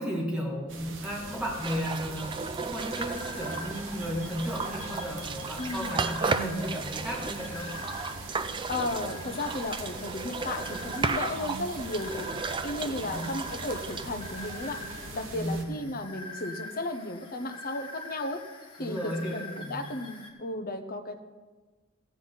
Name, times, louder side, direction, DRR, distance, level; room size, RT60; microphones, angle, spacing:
voice 1, 0.0-7.7 13.0-13.4 15.3-15.8 18.8-19.9, equal, 5° right, -4 dB, 2.3 m, -34 dB
sound 1, 0.7-15.6, right 3 dB, 60° right, 1.2 m, -42 dB
sound 2, 1.6-15.1, right 4 dB, 20° right, 0.4 m, -35 dB
sound 3, 2.8-20.3, left 3 dB, 25° left, 1.4 m, -45 dB
voice 2, 5.6-5.9 8.7-12.3 12.6-14.8 15.1-18.4 18.8-21.2, left 2 dB, 40° left, 6 dB, 0.9 m, -34 dB
15.5 x 9.0 x 4.0 m, 1.3 s
head